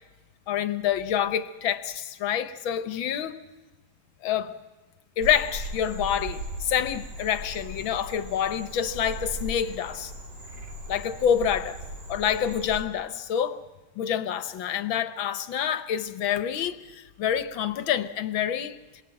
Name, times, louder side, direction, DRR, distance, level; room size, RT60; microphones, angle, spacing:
voice 1, 0.5-3.4 4.2-4.5 5.2-10.1 10.9-11.8 12.1-13.6 14.0-18.8, left 9 dB, 80° left, 1.9 m, -27 dB
Frog, 5.2-12.8, equal, 60° right, 3.8 m, -38 dB
27.5 x 21.5 x 9.0 m
omnidirectional pair, 2.2 m